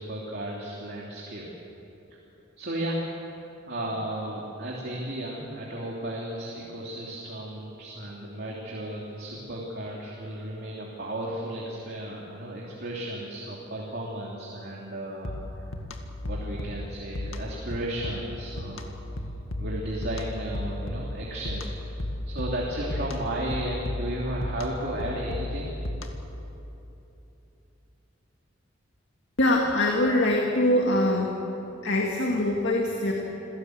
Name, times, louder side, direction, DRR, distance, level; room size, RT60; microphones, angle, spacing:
voice 1, 0.0-1.5 2.1-2.2 2.6-3.0 3.7-15.7 16.2-18.9 19.6-25.7, right 1 dB, 55° right, -3 dB, 3.0 m, -34 dB
sound 1, 15.2-26.4, left 1 dB, 90° left, 2.0 m, -35 dB
voice 2, 29.4-31.3 31.8-33.1, left 1 dB, 60° left, 0 dB, 2.1 m, -23 dB
27.0 x 17.0 x 8.0 m, 3.0 s
head